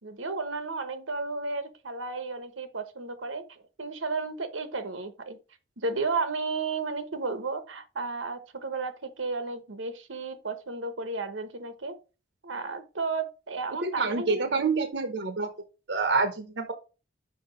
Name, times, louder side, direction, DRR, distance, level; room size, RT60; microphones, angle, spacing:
voice 1, 0.0-5.4 5.8-11.9 12.4-14.4, right 3 dB, 85° right, 1.1 m, -33 dB
voice 2, 13.8-15.5 15.9-16.7, right 4 dB, 60° right, 0.8 m, -27 dB
5.9 x 4.9 x 4.9 m
head